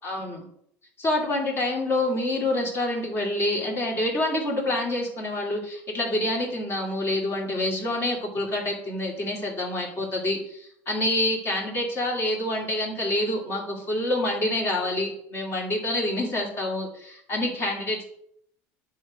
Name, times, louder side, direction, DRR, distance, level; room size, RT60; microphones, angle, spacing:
voice 1, 0.0-0.4 1.0-18.0, left 1 dB, 35° left, -1 dB, 2.6 m, -27 dB
8.5 x 3.7 x 6.3 m, 0.69 s
supercardioid pair, 125°, 7 cm